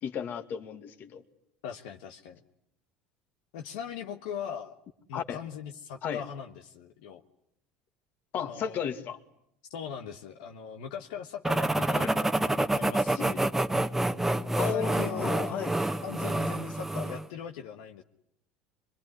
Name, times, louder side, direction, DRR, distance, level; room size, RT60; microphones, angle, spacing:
voice 1, 0.0-1.2 5.1-5.4 6.0-6.2 8.3-9.2 11.9-12.1 13.2-13.3 14.6-15.7, left 7 dB, 55° left, 9 dB, 2.3 m, -34 dB
voice 2, 1.6-2.4 3.5-4.7 5.1-7.2 8.4-8.8 9.7-13.5 14.7-15.6 16.0-18.0, left 8 dB, 85° left, 4 dB, 1.4 m, -40 dB
sound 1, 11.4-17.3, right 1 dB, 5° right, 1.2 m, -28 dB
25.5 x 22.5 x 9.8 m, 0.73 s
supercardioid pair, 95°, 4 cm